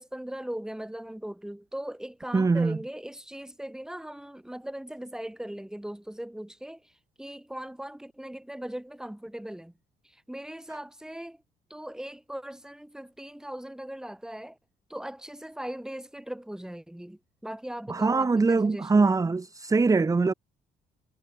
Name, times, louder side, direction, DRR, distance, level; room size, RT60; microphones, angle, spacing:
voice 1, 0.0-6.9 7.2-9.7 10.0-11.4 11.7-14.6 14.9-19.3, right 1 dB, 5° right, 5.3 m, -39 dB
voice 2, 2.3-2.8 17.9-20.3, right 4 dB, 20° right, 1.8 m, -23 dB
cardioid pair, 110°, 17 cm